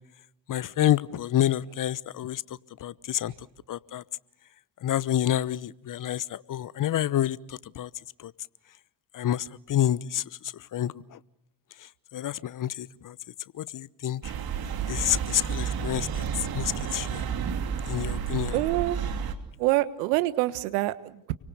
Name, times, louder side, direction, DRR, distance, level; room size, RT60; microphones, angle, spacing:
voice 1, 0.5-2.4 2.8-3.3 3.7-4.0 4.8-7.9 8.2-8.3 9.1-10.2 10.7-11.2 12.1-13.2 13.5-14.3 14.9-17.2 17.9-18.5, left 12 dB, 40° left, 1.0 m, -28 dB
sound 1, 14.2-19.3, right 7 dB, 50° right, 2.9 m, -31 dB
voice 2, 18.5-19.0 19.6-21.3, right 18 dB, 70° right, 1.4 m, -26 dB
29.5 x 24.0 x 6.8 m
figure-of-eight pair, 50°, 47 cm